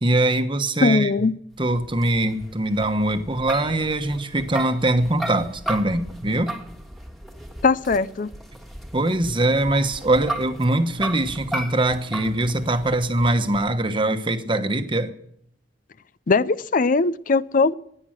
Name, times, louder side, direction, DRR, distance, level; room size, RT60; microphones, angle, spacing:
voice 1, 0.0-1.1 1.6-6.6 8.9-15.1, right 2 dB, 30° right, 1.2 m, -22 dB
voice 2, 0.8-1.3 7.6-8.3 16.3-17.7, left 4 dB, 50° left, 0.5 m, -20 dB
sound 1, 1.6-13.7, right 1 dB, ahead, 1.7 m, -36 dB
17.0 x 9.9 x 7.5 m
head